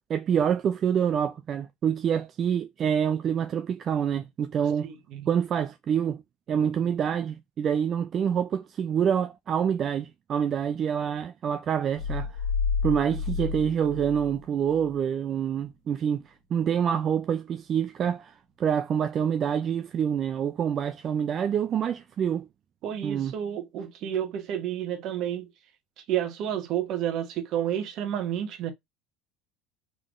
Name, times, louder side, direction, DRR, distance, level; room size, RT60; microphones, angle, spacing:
voice 1, 0.1-4.9 5.3-6.2 6.5-12.4 12.8-22.5 23.0-23.3, right 8 dB, 40° right, 0.3 m, -26 dB
voice 2, 4.8-5.3 22.8-25.5 26.0-28.7, right 10 dB, 55° right, 1.0 m, -30 dB
sound 1, 12.0-14.9, left 5 dB, 60° left, 1.1 m, -30 dB
3.8 x 3.3 x 2.5 m
supercardioid pair, 115°, 0 cm